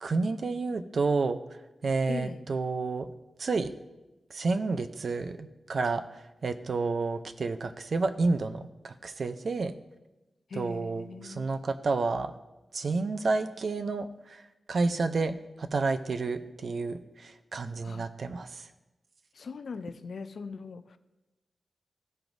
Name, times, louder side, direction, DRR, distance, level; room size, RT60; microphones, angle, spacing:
voice 1, 0.0-1.4 1.8-3.1 3.4-3.7 4.3-9.7 10.5-12.3 12.7-18.7, right 3 dB, 60° right, 0.5 m, -30 dB
voice 2, 2.1-2.5 10.5-11.5 17.8-18.1 19.4-21.0, left 4 dB, 70° left, 0.5 m, -40 dB
15.5 x 5.8 x 2.6 m
wide cardioid pair, 110°, 0 cm